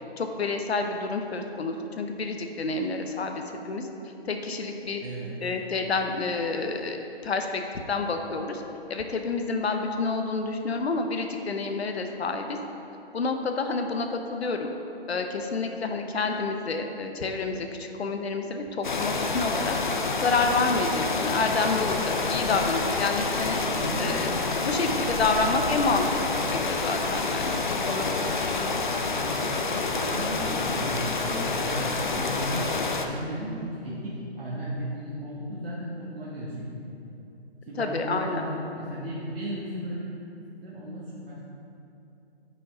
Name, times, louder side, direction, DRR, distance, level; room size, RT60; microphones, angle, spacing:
voice 1, 0.2-3.9 4.2-5.0 5.4-7.0 7.2-7.6 7.9-8.6 8.9-12.6 13.1-14.7 15.1-19.8 20.2-23.6 24.0-24.3 24.6-27.6 27.9-28.4 37.8-38.5, left 3 dB, 75° left, 5 dB, 0.9 m, -28 dB
voice 2, 5.0-5.4 21.7-21.8 23.7-24.1 24.6-24.9 25.2-25.5 29.2-29.6 29.9-37.0 37.7-40.1 40.6-41.4, right 1 dB, 60° right, -9 dB, 1.5 m, -35 dB
sound 1, 18.8-33.1, left 3 dB, 50° left, 0.6 m, -28 dB
9.7 x 5.5 x 3.7 m, 2.9 s
hypercardioid pair, 180°, 32 cm